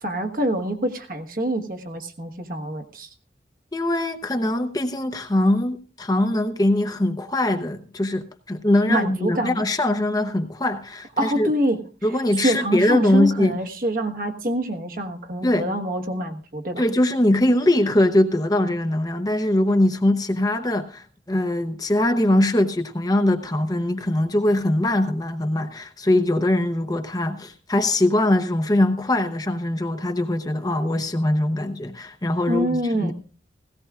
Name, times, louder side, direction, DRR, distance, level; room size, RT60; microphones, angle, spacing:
voice 1, 0.0-3.1 8.9-9.7 11.2-11.8 12.4-16.8 32.5-33.1, right 1 dB, 50° right, 1.3 m, -25 dB
voice 2, 3.7-11.5 12.0-13.6 15.4-15.7 16.8-33.1, left 1 dB, 20° left, 0.7 m, -22 dB
17.0 x 16.5 x 2.4 m
head